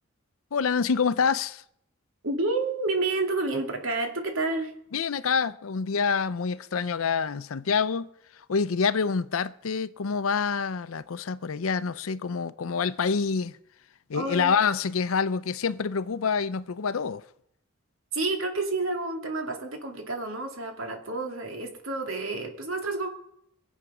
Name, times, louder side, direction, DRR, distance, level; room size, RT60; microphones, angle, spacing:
voice 1, 0.5-1.6 4.9-8.1 8.5-13.6 14.1-17.2, left 5 dB, 85° left, 0.6 m, -27 dB
voice 2, 2.2-4.7 14.1-14.5 18.1-23.1, right 2 dB, 80° right, 2.5 m, -29 dB
22.5 x 8.2 x 6.1 m
head